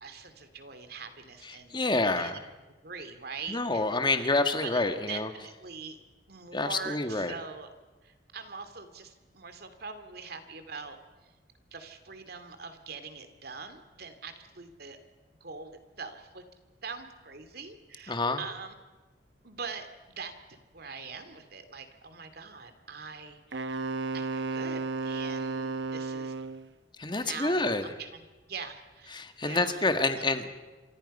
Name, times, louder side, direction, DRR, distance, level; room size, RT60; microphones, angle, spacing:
voice 1, 0.0-2.3 2.8-3.8 4.1-4.3 4.6-4.8 5.1-6.0 6.3-7.7 8.0-11.0 11.7-15.0 15.4-16.4 16.8-18.7 19.4-23.8 24.1-26.3 27.2-29.8 30.1-30.4, right 5 dB, 65° right, 8 dB, 2.5 m, -43 dB
voice 2, 1.5-2.4 3.5-5.3 6.5-7.3 18.1-18.4 27.0-27.8 29.1-30.5, left 2 dB, 25° left, 8 dB, 1.7 m, -28 dB
Wind instrument woodwind instrument, 23.5-26.7, right 3 dB, 90° right, 1.0 m, -33 dB
27.5 x 24.5 x 5.5 m, 1.2 s
head